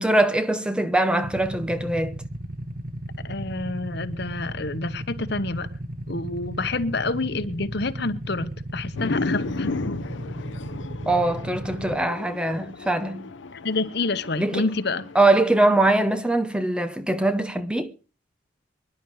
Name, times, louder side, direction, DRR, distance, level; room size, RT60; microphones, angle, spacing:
voice 1, 0.0-2.2 11.1-13.3 14.4-14.7 15.1-17.9, right 2 dB, 5° right, 0.8 m, -22 dB
Motorcycle / Idling, 1.2-12.0, right 1 dB, 45° right, 1.7 m, -35 dB
voice 2, 3.2-5.7 6.1-9.7 13.5-15.0, left 3 dB, 60° left, 1.1 m, -28 dB
sound 1, 8.9-15.2, left 3 dB, 75° left, 0.8 m, -33 dB
25.5 x 11.0 x 3.2 m
head